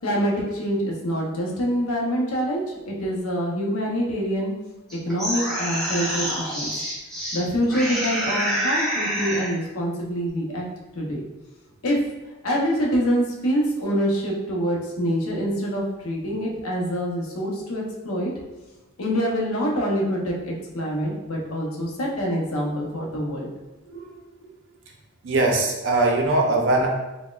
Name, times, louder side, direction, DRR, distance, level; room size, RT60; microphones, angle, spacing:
voice 1, 0.0-4.5 5.0-6.7 7.3-10.6 10.9-11.2 11.8-12.0 12.4-18.3 19.0-23.5 23.9-24.0 24.4-24.5, equal, 90° left, -2 dB, 0.7 m, -25 dB
sound 1, 4.9-7.4 7.7-9.5, equal, ahead, 0.5 m, -27 dB
voice 2, 25.2-26.9, right 2 dB, 60° right, 0 dB, 0.5 m, -20 dB
4.0 x 2.1 x 2.3 m, 1.1 s
head